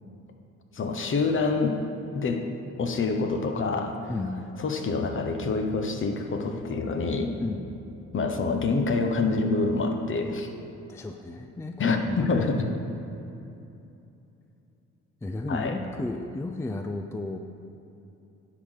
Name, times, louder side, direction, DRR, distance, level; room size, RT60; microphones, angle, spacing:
voice 1, 0.7-1.8 2.1-2.5 2.8-3.9 4.6-7.3 8.1-10.5 11.8-12.6 15.5-15.8, left 3 dB, 45° left, 5 dB, 0.9 m, -26 dB
voice 2, 4.1-4.4 7.4-7.6 10.9-12.4 15.2-17.4, left 2 dB, 10° left, 5 dB, 0.3 m, -33 dB
10.0 x 4.0 x 6.4 m, 2.8 s
cardioid pair, 90°, 30 cm